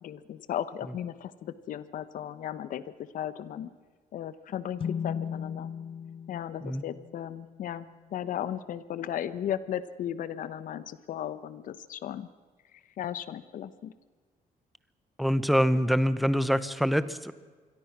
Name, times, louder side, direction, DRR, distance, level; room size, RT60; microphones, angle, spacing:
voice 1, 0.0-3.7 4.1-5.7 6.3-7.8 8.1-12.3 13.0-13.9, left 10 dB, 65° left, 15 dB, 1.2 m, -36 dB
sound 1, 4.8-8.4, left 7 dB, 35° left, 0.6 m, -38 dB
voice 2, 15.2-17.3, equal, ahead, 14 dB, 1.0 m, -25 dB
27.5 x 22.0 x 6.1 m, 1.5 s
cardioid pair, 140°, 15 cm